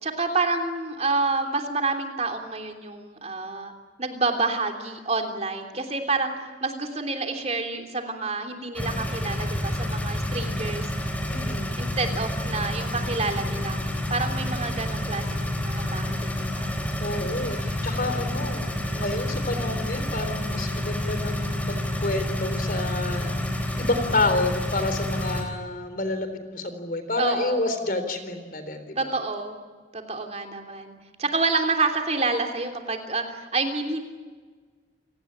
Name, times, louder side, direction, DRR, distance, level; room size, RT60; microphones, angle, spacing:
voice 1, 0.0-3.7 4.0-6.3 6.6-10.9 11.8-13.8 14.1-16.7 17.2-17.8 27.2-27.6 28.9-29.5 29.9-34.0, right 3 dB, 35° right, 4 dB, 3.1 m, -28 dB
sound 1, 8.8-25.4, left 1 dB, 10° left, 4.1 m, -29 dB
voice 2, 11.3-11.9 17.0-17.6 17.8-23.4 23.8-29.1, left 2 dB, 50° left, 9 dB, 3.9 m, -29 dB
29.5 x 18.0 x 10.0 m, 1.5 s
head